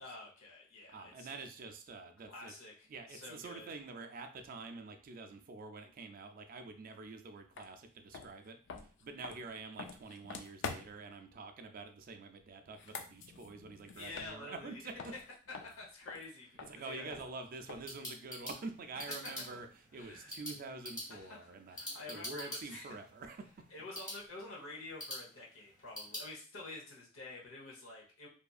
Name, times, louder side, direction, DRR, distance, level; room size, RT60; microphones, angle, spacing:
voice 1, 0.0-1.4 2.3-3.7 14.0-14.8 15.1-15.2 15.5-17.1 19.2-19.6 19.9-20.3 21.1-22.7 23.7-28.3, left 2 dB, 80° left, -2 dB, 0.9 m, -49 dB
voice 2, 0.9-2.5 2.9-15.1 16.6-19.7 19.9-23.5, right 3 dB, 45° right, 6 dB, 0.3 m, -47 dB
sound 1, 7.5-7.7 8.1-11.1 12.6-14.7 15.0-18.0, left 5 dB, 60° left, 0.3 m, -47 dB
sound 2, 17.5-26.3, equal, 15° left, 1.3 m, -47 dB
2.7 x 2.4 x 2.3 m, 0.39 s
head